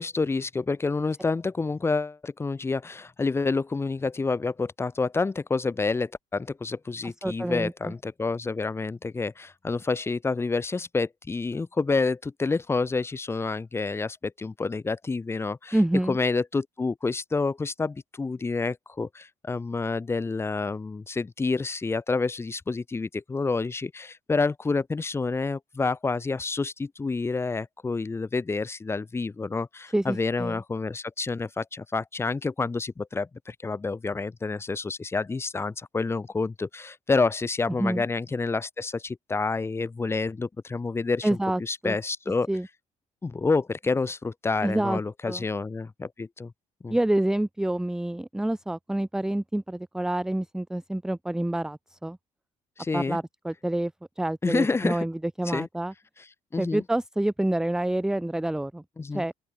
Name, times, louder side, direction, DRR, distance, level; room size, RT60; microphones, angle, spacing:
voice 1, 0.0-15.8 16.1-41.3 41.6-42.5 43.2-46.5 46.8-47.0 52.8-53.2 54.4-55.0 55.5-55.7 56.5-56.8 59.0-59.2, left 4 dB, 20° left, 2.3 m, -28 dB
voice 2, 7.0-7.9 15.7-16.2 29.9-30.6 37.8-38.0 41.2-42.0 42.5-42.7 44.6-45.0 45.3-45.4 46.9-52.2 52.9-53.9 54.2-55.9 56.6-58.8 59.1-59.3, right 1 dB, 5° right, 0.8 m, -27 dB
open air
cardioid pair, 140°, 14 cm